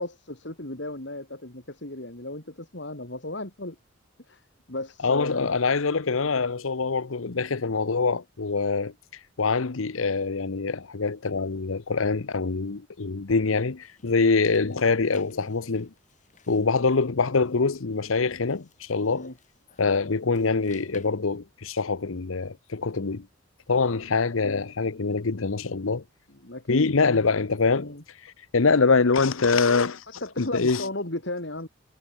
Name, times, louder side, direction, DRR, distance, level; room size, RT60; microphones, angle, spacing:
voice 1, 0.0-3.8 4.3-4.4 4.7-5.6 14.5-14.8 19.1-19.3 24.4-24.6 26.4-27.4 27.7-28.0 30.2-31.7, left 1 dB, 60° left, 2.9 m, -35 dB
voice 2, 5.0-8.9 9.4-15.9 16.5-19.3 19.8-23.3 23.7-26.0 26.7-27.9 28.2-30.9, left 4 dB, 80° left, 0.9 m, -24 dB
sound 1, 13.8-21.1, left 3 dB, 35° left, 5.9 m, -56 dB
head